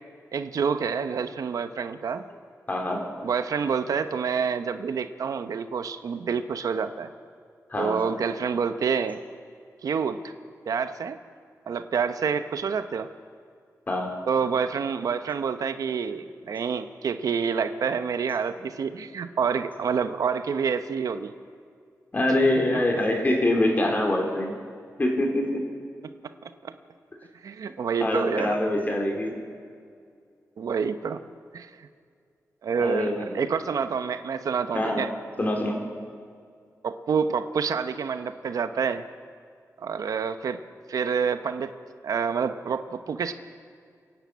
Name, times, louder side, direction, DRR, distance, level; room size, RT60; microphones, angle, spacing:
voice 1, 0.3-2.2 3.2-7.1 7.8-9.2 9.8-10.3 10.7-11.2 11.7-13.1 14.3-21.3 26.4-26.7 27.4-28.6 30.6-31.2 31.5-31.9 32.6-35.1 36.8-39.0 39.8-40.6 40.9-41.7 42.0-43.3, right 6 dB, 75° right, 10 dB, 0.9 m, -28 dB
voice 2, 2.7-3.0 7.7-8.0 13.9-14.1 22.1-24.6 25.0-25.6 28.0-29.3 32.8-33.5 34.7-35.1 35.4-35.8, left 1 dB, 30° left, 2 dB, 3.5 m, -24 dB
29.0 x 10.5 x 8.6 m, 2.2 s
wide cardioid pair, 125°, 6 cm